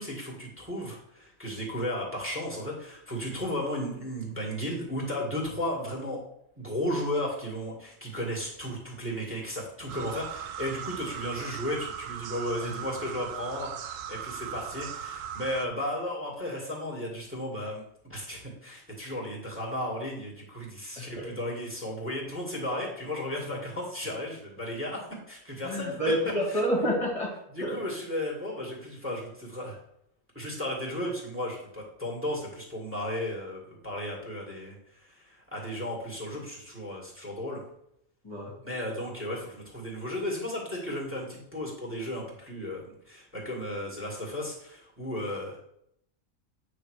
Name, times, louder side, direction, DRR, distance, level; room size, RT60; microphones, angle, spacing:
voice 1, 0.0-6.2 6.6-17.8 18.1-25.0 25.3-26.0 26.5-26.6 27.5-29.8 30.3-37.6 38.6-45.6, left 1 dB, 10° right, 0 dB, 2.0 m, -34 dB
sound 1, 9.9-15.7, right 9 dB, 75° right, 1.0 m, -38 dB
voice 2, 21.0-21.3 25.6-27.3 27.6-27.8 38.2-38.5, equal, 25° left, -4 dB, 1.7 m, -29 dB
8.7 x 3.3 x 6.4 m, 0.75 s
omnidirectional pair, 1.4 m